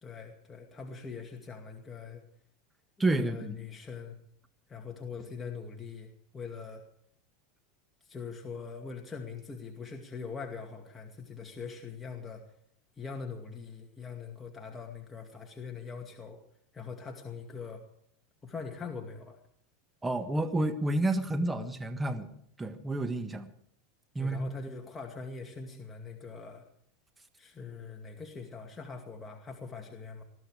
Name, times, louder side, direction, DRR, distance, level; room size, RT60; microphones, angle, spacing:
voice 1, 0.0-2.2 3.0-4.2 4.7-6.8 8.0-12.4 13.0-16.4 16.7-17.8 18.4-19.4 24.1-26.6 27.4-30.2, left 5 dB, 15° left, 2 dB, 2.2 m, -42 dB
voice 2, 3.0-3.6 20.0-22.3 22.6-23.5 24.1-24.5, right 2 dB, 10° right, 8 dB, 1.5 m, -30 dB
20.5 x 14.5 x 4.9 m, 0.67 s
supercardioid pair, 120°, 0 cm